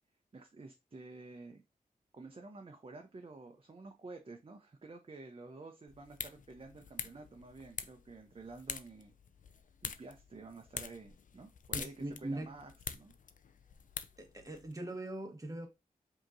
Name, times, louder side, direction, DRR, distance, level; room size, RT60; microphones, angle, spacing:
voice 1, 0.3-1.6 2.1-9.1 9.8-13.1, right 3 dB, 40° right, 0.7 m, -51 dB
sound 1, 5.9-14.7, left 6 dB, 60° left, 0.4 m, -46 dB
voice 2, 11.7-12.5 14.2-15.7, right 1 dB, 20° right, 1.1 m, -41 dB
5.0 x 2.9 x 2.6 m
wide cardioid pair, 65°, 15 cm